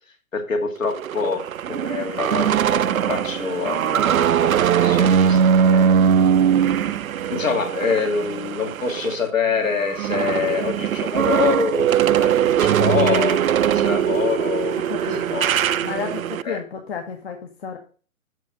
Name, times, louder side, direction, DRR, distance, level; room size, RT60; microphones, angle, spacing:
voice 1, 0.3-6.0 7.3-14.9 15.3-15.6 16.4-16.6, left 6 dB, 65° left, 4 dB, 2.2 m, -26 dB
sound 1, 0.8-9.2 9.6-16.4, right 8 dB, 70° right, 0.5 m, -20 dB
voice 2, 14.9-15.4 15.8-17.8, left 6 dB, 45° left, 3 dB, 1.3 m, -31 dB
7.4 x 6.5 x 5.1 m, 0.39 s
figure-of-eight pair, 125°, 43 cm